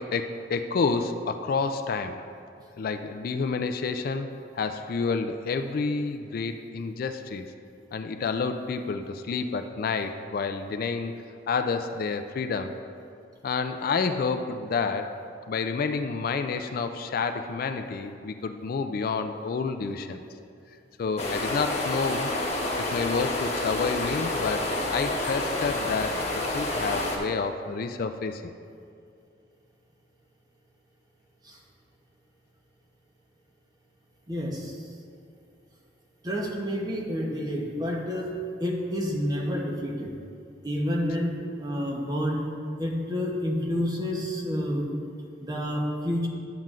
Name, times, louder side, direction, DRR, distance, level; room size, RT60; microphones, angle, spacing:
voice 1, 0.0-2.2 2.8-4.3 4.5-7.5 7.9-11.1 11.5-12.7 13.4-15.1 15.5-20.2 21.0-22.3 22.9-26.2 26.5-28.5, left 4 dB, 50° left, 8 dB, 0.3 m, -29 dB
sound 1, 21.2-27.2, left 2 dB, 35° left, 1.1 m, -29 dB
voice 2, 34.3-34.8 36.2-38.3 38.6-40.1 40.6-42.4 42.8-44.9 45.4-46.3, equal, 20° right, -1 dB, 0.9 m, -29 dB
10.5 x 7.4 x 2.5 m, 2.4 s
head